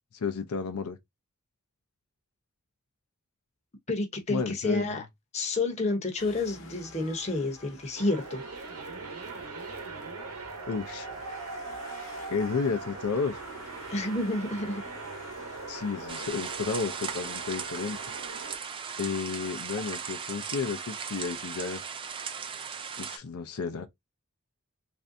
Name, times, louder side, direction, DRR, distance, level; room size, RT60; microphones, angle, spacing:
voice 1, 0.1-1.0 4.3-4.9 10.7-11.1 12.3-13.4 15.7-18.0 19.0-21.8 23.0-23.9, left 5 dB, 80° left, 0.5 m, -32 dB
voice 2, 3.9-5.0 5.3-8.4 13.9-14.8, left 2 dB, 30° left, 0.8 m, -29 dB
sound 1, 6.2-16.3, left 4 dB, 60° left, 0.9 m, -51 dB
sound 2, 8.0-18.5, right 3 dB, 80° right, 0.9 m, -40 dB
sound 3, 16.1-23.2, right 6 dB, 25° right, 0.3 m, -37 dB
3.3 x 2.6 x 2.6 m
head